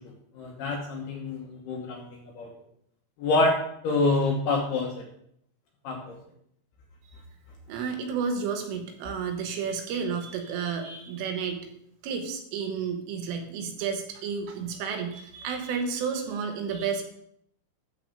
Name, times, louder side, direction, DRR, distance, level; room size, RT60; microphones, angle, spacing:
voice 1, 0.4-2.5 3.2-3.6 3.8-5.0 5.8-6.2, left 2 dB, 70° left, 0 dB, 2.6 m, -27 dB
voice 2, 7.7-11.7 12.0-17.0, right 6 dB, 75° right, 4 dB, 3.8 m, -31 dB
12.5 x 4.9 x 6.7 m, 0.70 s
omnidirectional pair, 5.8 m